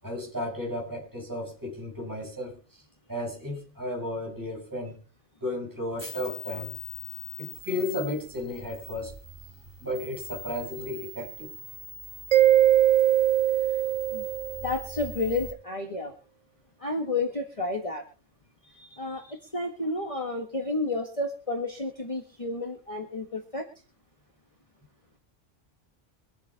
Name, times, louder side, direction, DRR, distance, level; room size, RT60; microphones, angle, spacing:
voice 1, 0.0-2.6 3.1-5.0 5.4-6.7 7.4-9.1 9.8-11.5 18.7-19.4, left 1 dB, 15° right, 6.4 m, -34 dB
sound 1, 6.0-15.5, left 1 dB, 55° right, 4.9 m, -42 dB
Mallet percussion, 12.3-14.9, right 12 dB, 85° right, 1.2 m, -21 dB
voice 2, 14.6-16.1 16.8-18.0 19.0-19.2 19.5-23.7, left 2 dB, 25° left, 1.8 m, -31 dB
25.0 x 8.3 x 3.5 m
omnidirectional pair, 1.3 m